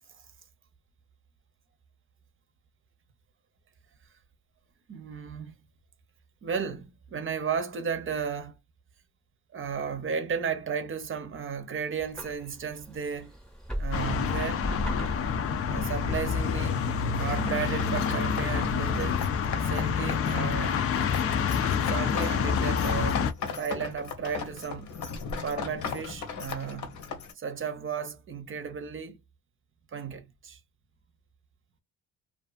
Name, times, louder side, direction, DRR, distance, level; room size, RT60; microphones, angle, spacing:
voice 1, 4.9-5.5 6.4-8.6 9.5-13.4 13.7-14.6 15.7-19.2 19.6-20.8 21.8-23.2 23.6-24.9 25.4-26.9 27.4-29.2 29.9-30.6, right 6 dB, 45° right, 0.7 m, -34 dB
sound 1, 12.0-21.5, equal, 5° left, 0.9 m, -41 dB
sound 2, 13.9-23.3, left 6 dB, 50° left, 0.5 m, -27 dB
sound 3, 17.1-27.3, left 5 dB, 75° left, 1.0 m, -38 dB
2.4 x 2.4 x 2.4 m
cardioid pair, 90°, 30 cm